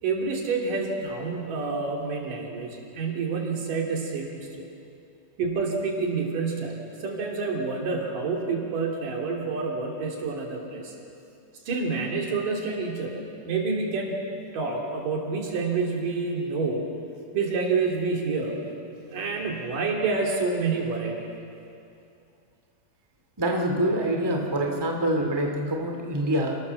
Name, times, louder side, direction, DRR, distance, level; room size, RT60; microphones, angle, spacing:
voice 1, 0.0-4.7 5.4-10.9 11.7-14.2 14.5-16.8 17.3-18.6 19.1-21.1, right 4 dB, 80° right, -1 dB, 4.7 m, -28 dB
voice 2, 23.4-26.6, right 1 dB, 10° right, 2 dB, 1.8 m, -25 dB
29.0 x 19.0 x 7.1 m, 2.6 s
omnidirectional pair, 3.8 m